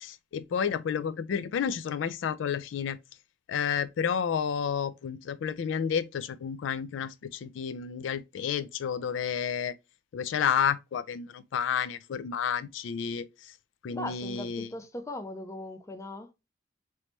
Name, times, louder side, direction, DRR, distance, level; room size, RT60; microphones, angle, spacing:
voice 1, 0.0-3.0 3.5-9.8 10.1-13.5 13.8-14.7, left 7 dB, 80° left, 0.3 m, -31 dB
voice 2, 13.9-16.3, left 1 dB, 15° left, 0.4 m, -39 dB
3.1 x 3.0 x 2.9 m
head